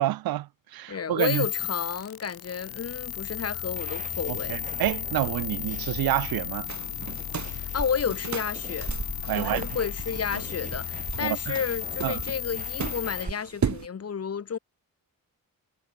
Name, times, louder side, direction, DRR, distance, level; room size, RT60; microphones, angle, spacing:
voice 1, 0.0-1.5 4.3-6.7 9.3-9.6 11.2-11.6 12.0-12.2, right 15 dB, 85° right, 0.5 m, -28 dB
voice 2, 0.9-4.6 7.5-8.9 9.4-14.6, left 7 dB, 45° left, 1.8 m, -31 dB
sound 1, 1.2-13.2, left 10 dB, 85° left, 2.0 m, -34 dB
sound 2, 3.7-13.3, right 4 dB, 20° right, 1.0 m, -42 dB
sound 3, 6.7-13.9, right 7 dB, 50° right, 3.3 m, -37 dB
wide cardioid pair, 170°, 35 cm